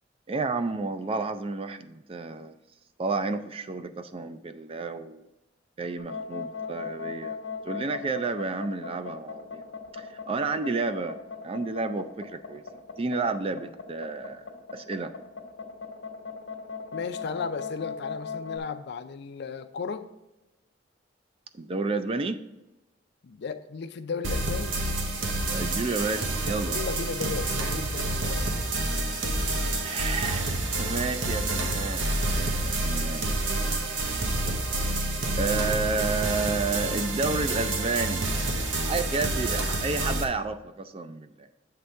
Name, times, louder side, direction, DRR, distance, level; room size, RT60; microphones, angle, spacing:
voice 1, 0.3-2.6 3.0-5.3 5.8-7.4 7.6-9.7 10.0-11.2 11.4-14.4 14.7-15.1 21.5-22.4 25.5-26.8 29.8-30.5 30.8-33.2 35.4-38.3 38.6-41.5, right 3 dB, 30° right, 10 dB, 0.4 m, -31 dB
sound 1, 6.0-18.6, left 5 dB, 80° left, 1.1 m, -37 dB
voice 2, 16.9-20.0 23.2-24.8 26.7-28.5, left 5 dB, 60° left, 10 dB, 0.5 m, -35 dB
sound 2, 24.2-40.2, right 2 dB, 90° right, 0.9 m, -28 dB
7.6 x 3.4 x 5.4 m, 0.97 s
head